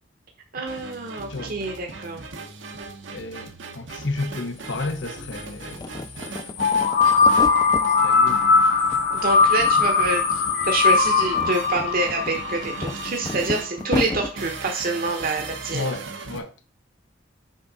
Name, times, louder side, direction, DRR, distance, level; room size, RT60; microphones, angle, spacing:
voice 1, 0.5-2.2 9.1-10.2 10.7-15.9, right 3 dB, 50° right, 1.0 m, -26 dB
sound 1, 0.7-16.4, right 4 dB, 75° right, 1.0 m, -39 dB
voice 2, 3.1-5.9 8.0-8.4 15.7-16.5, left 2 dB, 75° left, 1.0 m, -32 dB
sound 2, 3.9-4.0 4.2-5.3 5.7-7.9 8.3-9.0 9.3-10.2 10.4-10.6 11.1-14.3, left 2 dB, 20° left, 0.4 m, -32 dB
sound 3, 6.6-13.4, left 4 dB, 50° left, 0.7 m, -20 dB
6.3 x 5.0 x 4.1 m
head